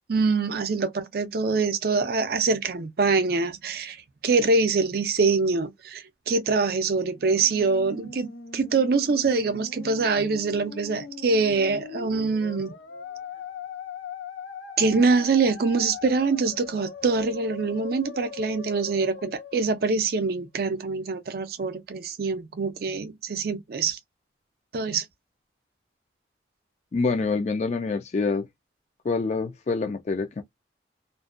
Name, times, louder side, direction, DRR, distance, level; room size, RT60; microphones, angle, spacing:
voice 1, 0.1-8.3 8.5-12.7 14.8-24.0 24.7-25.1, right 4 dB, 55° right, 0.4 m, -24 dB
Musical instrument, 7.1-20.4, left 5 dB, 80° left, 0.6 m, -41 dB
voice 2, 26.9-28.5 29.0-30.4, left 4 dB, 40° left, 0.3 m, -26 dB
2.5 x 2.2 x 2.4 m
head